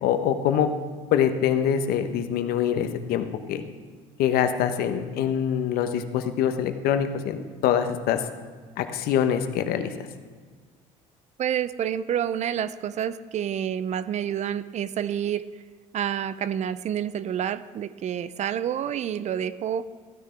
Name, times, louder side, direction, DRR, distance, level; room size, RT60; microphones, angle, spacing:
voice 1, 0.0-0.7 1.1-3.6 4.2-8.2 8.8-9.9, left 9 dB, 65° left, 8 dB, 1.0 m, -24 dB
voice 2, 11.4-15.4 15.9-19.9, right 9 dB, 45° right, 16 dB, 0.5 m, -28 dB
15.0 x 9.8 x 3.4 m, 1.5 s
hypercardioid pair, 75°, 17 cm